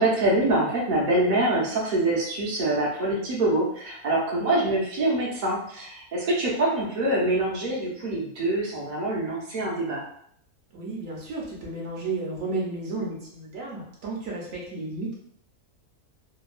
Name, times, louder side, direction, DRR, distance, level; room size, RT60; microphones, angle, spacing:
voice 1, 0.0-10.0, right 1 dB, 40° right, -5 dB, 0.7 m, -25 dB
voice 2, 10.7-15.2, right 3 dB, 65° right, -4 dB, 1.0 m, -33 dB
3.0 x 2.2 x 2.4 m, 0.66 s
omnidirectional pair, 1.6 m